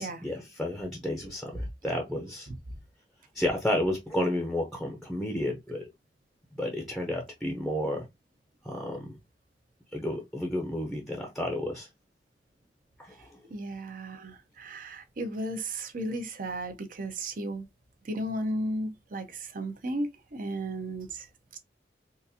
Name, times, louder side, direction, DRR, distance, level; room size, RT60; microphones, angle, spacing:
voice 1, 0.0-2.5 3.3-5.9 6.6-8.1 8.6-9.2 9.9-11.9 13.0-13.4, left 1 dB, ahead, 0.6 m, -31 dB
voice 2, 13.5-17.6 18.0-21.3 21.5-21.6, right 1 dB, 50° right, 0.6 m, -34 dB
3.8 x 2.5 x 2.6 m
head